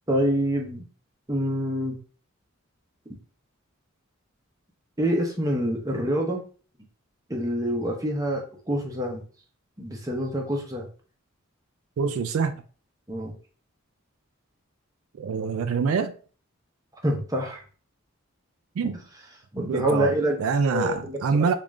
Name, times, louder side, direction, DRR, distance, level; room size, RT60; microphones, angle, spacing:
voice 1, 0.1-0.9 1.3-1.9 5.0-6.4 7.3-9.2 9.8-10.9 13.1-13.3 17.0-17.6 18.8-18.9 19.5-20.4 20.7-21.5, equal, 15° right, 0.7 m, -26 dB
voice 2, 12.0-12.6 15.2-16.1 18.8-19.0 19.6-20.1 20.4-21.5, right 5 dB, 80° right, 0.3 m, -25 dB
3.6 x 2.5 x 3.1 m
head